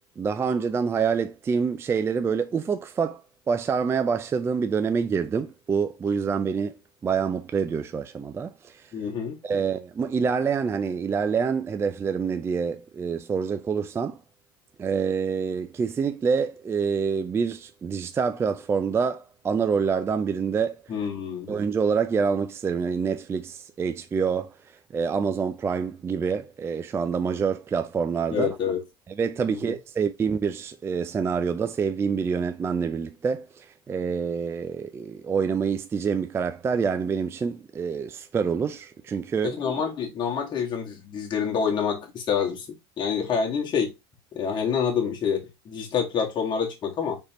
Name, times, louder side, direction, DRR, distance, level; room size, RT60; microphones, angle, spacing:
voice 1, 0.2-8.9 9.4-14.2 14.8-20.8 21.5-24.5 24.9-28.5 29.2-39.6, right 6 dB, 20° right, 0.3 m, -26 dB
voice 2, 8.9-9.4 20.9-21.5 28.3-28.8 29.5-29.6 39.4-42.7 43.0-43.9 44.3-47.2, left 7 dB, 35° left, 1.7 m, -27 dB
3.9 x 3.5 x 3.0 m
hypercardioid pair, 95°, 13 cm